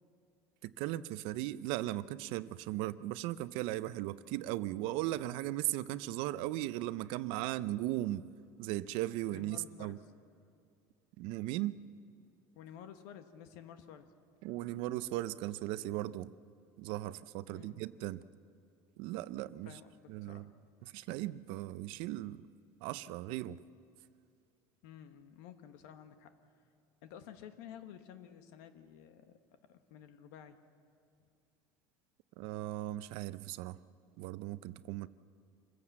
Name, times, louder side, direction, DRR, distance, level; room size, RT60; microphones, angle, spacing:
voice 1, 0.6-8.3 8.6-10.0 11.2-11.8 14.4-16.3 16.8-18.2 19.0-19.8 20.1-20.5 20.8-22.5 22.8-23.6 32.4-33.8 34.2-35.1, right 15 dB, 60° right, 15 dB, 0.5 m, -37 dB
voice 2, 9.3-10.0 12.5-14.1 17.5-17.9 19.6-20.4 24.8-26.4 27.0-29.4 29.7-30.6, left 9 dB, 75° left, 8 dB, 1.4 m, -52 dB
26.0 x 16.0 x 7.4 m, 2.4 s
cardioid pair, 150°, 10 cm